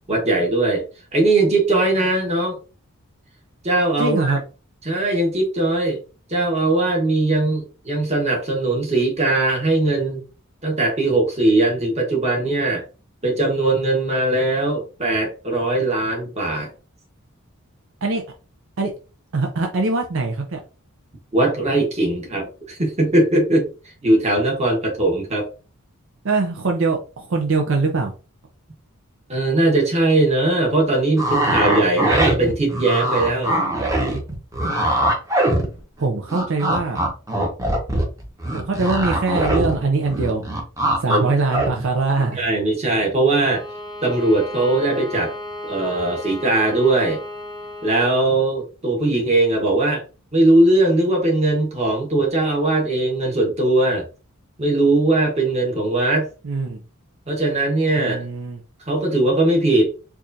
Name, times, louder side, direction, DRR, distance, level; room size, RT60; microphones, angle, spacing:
voice 1, 0.1-0.8 1.1-2.6 3.6-4.3 4.8-6.0 6.3-10.2 10.6-12.8 13.2-16.7 21.3-23.7 24.0-25.5 29.3-33.6 41.1-41.3 42.4-43.6 44.0-45.3 45.7-47.2 47.8-50.0 50.3-54.0 54.6-56.3 57.3-58.2 58.9-59.9, right 2 dB, 30° right, 0 dB, 1.3 m, -19 dB
voice 2, 4.0-4.4 18.0-18.2 18.8-18.9 19.3-20.6 26.2-28.1 36.0-37.0 38.5-40.4 41.0-42.4 56.4-56.8 58.0-58.6, right 3 dB, 60° right, 3 dB, 0.5 m, -22 dB
sound 1, 31.2-36.0 36.3-39.8 40.0-41.2 41.5-41.7, right 1 dB, 15° right, 0.9 m, -21 dB
Bowed string instrument, 43.3-48.2, left 1 dB, 20° left, 0.4 m, -34 dB
4.7 x 2.5 x 2.7 m, 0.34 s
head